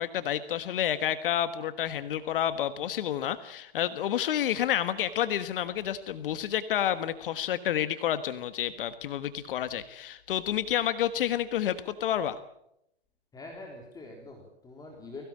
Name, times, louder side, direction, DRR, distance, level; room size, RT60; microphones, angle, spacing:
voice 1, 0.0-12.4, left 11 dB, 55° left, 12 dB, 1.4 m, -29 dB
voice 2, 13.3-15.2, left 2 dB, 10° left, 1 dB, 3.6 m, -44 dB
22.0 x 17.5 x 8.6 m, 0.80 s
hypercardioid pair, 135°, 32 cm